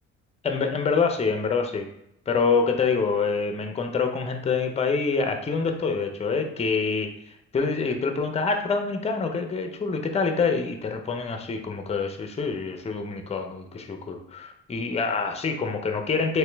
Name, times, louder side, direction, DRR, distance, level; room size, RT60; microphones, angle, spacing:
voice 1, 0.4-1.9 2.3-7.1 7.5-16.4, left 4 dB, 20° left, 5 dB, 0.5 m, -26 dB
3.0 x 3.0 x 3.3 m, 0.80 s
cardioid pair, 90°, 30 cm